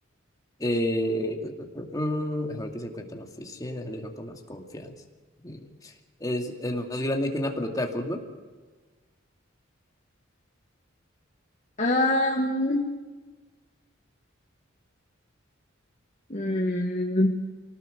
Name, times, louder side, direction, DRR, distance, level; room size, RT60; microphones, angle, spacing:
voice 1, 0.6-4.9 5.4-5.9 6.2-8.2, left 1 dB, 20° left, 2 dB, 2.4 m, -30 dB
voice 2, 11.8-12.9 16.3-17.3, left 1 dB, 35° left, -1 dB, 1.8 m, -24 dB
24.5 x 18.5 x 6.5 m, 1.3 s
head